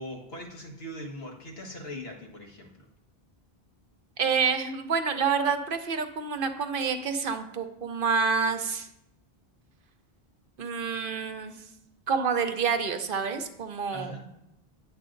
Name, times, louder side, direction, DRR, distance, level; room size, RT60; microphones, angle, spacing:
voice 1, 0.0-2.9 13.9-14.3, left 1 dB, 75° left, 0 dB, 1.7 m, -40 dB
voice 2, 4.2-8.9 10.6-11.6 12.1-14.2, right 5 dB, 60° right, 8 dB, 0.9 m, -28 dB
9.8 x 7.5 x 3.8 m, 0.82 s
omnidirectional pair, 1.0 m